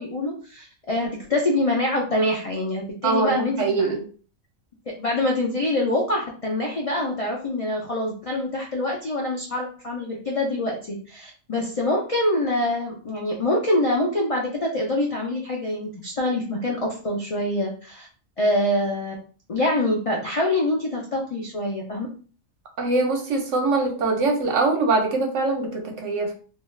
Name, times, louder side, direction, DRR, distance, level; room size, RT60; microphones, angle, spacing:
voice 1, 0.0-3.9 5.0-16.8 17.0-18.1 18.4-19.1 19.5-22.1, left 1 dB, 55° left, -2 dB, 0.3 m, -25 dB
voice 2, 3.0-4.0 22.8-26.3, right 3 dB, 70° right, 3 dB, 1.0 m, -23 dB
2.6 x 2.3 x 3.1 m, 0.39 s
omnidirectional pair, 1.4 m